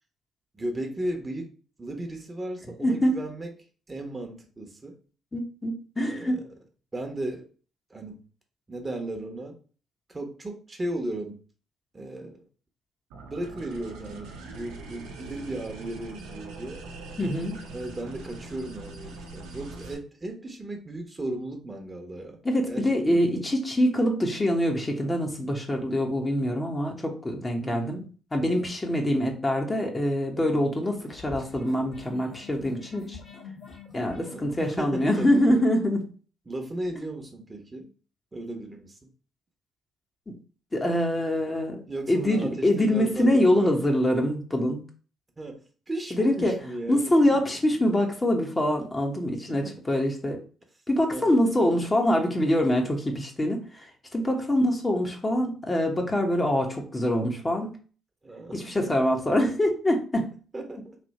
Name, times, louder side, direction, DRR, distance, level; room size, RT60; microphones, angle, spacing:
voice 1, 0.5-1.5 1.8-3.5 3.9-5.0 6.1-6.5 6.9-7.5 7.9-8.2 8.7-9.6 10.1-11.4 11.9-12.4 13.3-16.8 17.7-22.4 22.7-23.4 27.6-28.1 29.0-29.4 34.1-35.6 36.5-37.9 38.3-39.0 41.9-43.8 45.4-47.6 49.5-49.8 51.1-51.5 58.2-58.9 60.5-61.0, right 1 dB, 30° right, 4 dB, 1.1 m, -36 dB
voice 2, 2.8-3.1 5.3-6.4 17.2-17.6 22.4-28.0 28.3-33.2 33.9-36.1 40.3-40.4 40.7-41.8 42.1-44.8 46.1-46.6 46.9-50.4 50.9-53.9 54.1-57.7 58.5-60.3, left 1 dB, 25° left, 1 dB, 1.2 m, -24 dB
sound 1, 13.1-19.9, right 3 dB, 80° right, 0.7 m, -42 dB
sound 2, 30.8-35.8, left 5 dB, 45° left, 1.6 m, -46 dB
3.4 x 2.7 x 4.1 m, 0.39 s
hypercardioid pair, 55°, 0 cm